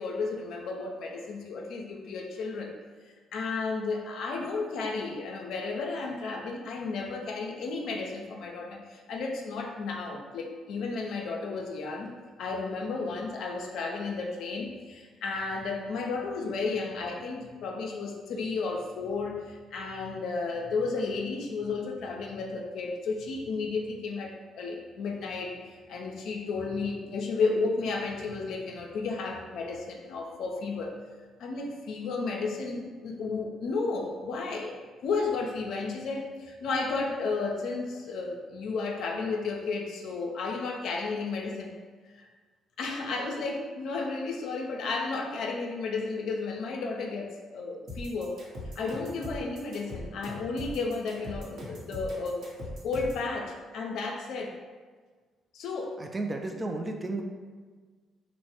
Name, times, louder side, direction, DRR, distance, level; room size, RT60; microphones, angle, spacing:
voice 1, 0.0-2.7 3.3-12.1 12.4-30.9 31.4-34.7 35.0-41.7 42.1-42.3 42.8-48.4 48.8-52.5 52.8-54.6 55.5-55.9, left 4 dB, 65° left, 1 dB, 0.4 m, -33 dB
sound 1, 47.9-53.2, left 1 dB, 60° right, 0.8 m, -40 dB
voice 2, 56.0-57.2, right 2 dB, 25° right, 3 dB, 0.4 m, -33 dB
2.9 x 2.1 x 2.8 m, 1.5 s
hypercardioid pair, 45°, 0 cm